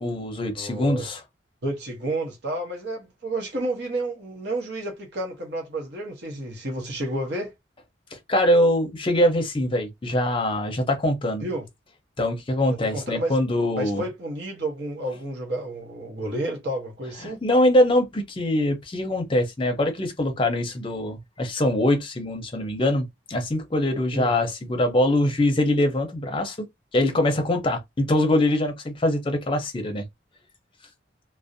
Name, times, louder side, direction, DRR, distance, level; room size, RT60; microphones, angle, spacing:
voice 1, 0.0-1.2 8.3-11.5 12.2-14.0 17.2-26.7 26.9-30.0, left 1 dB, 30° left, 0.6 m, -23 dB
voice 2, 0.5-1.2 1.6-7.5 11.4-11.7 12.7-13.4 13.8-17.4 24.1-24.3, right 1 dB, 60° right, 0.8 m, -31 dB
2.5 x 2.0 x 2.5 m
head